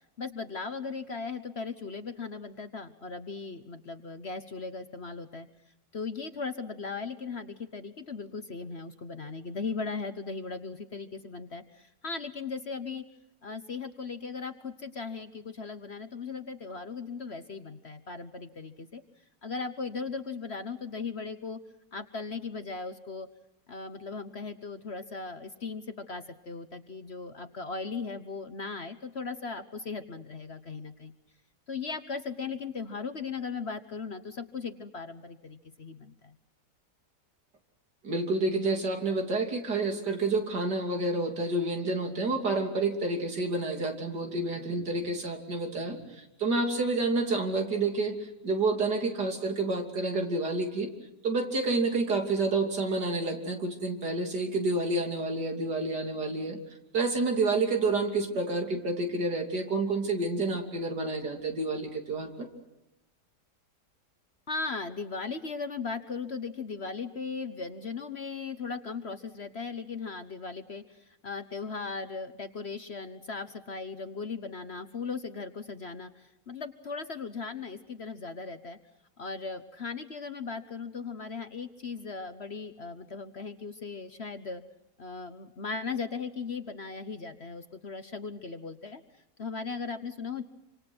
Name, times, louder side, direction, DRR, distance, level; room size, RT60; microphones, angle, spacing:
voice 1, 0.2-5.5 5.9-13.0 13.4-19.0 19.4-21.6 21.9-23.3 23.7-31.1 31.7-36.3 64.5-78.8 79.2-84.6 85.0-89.0 89.4-90.4, left 4 dB, 45° left, 10 dB, 1.2 m, -38 dB
voice 2, 38.0-50.9 51.2-56.6 56.9-62.5, right 3 dB, 70° right, 3 dB, 3.6 m, -29 dB
27.0 x 26.0 x 6.1 m, 0.92 s
omnidirectional pair, 1.8 m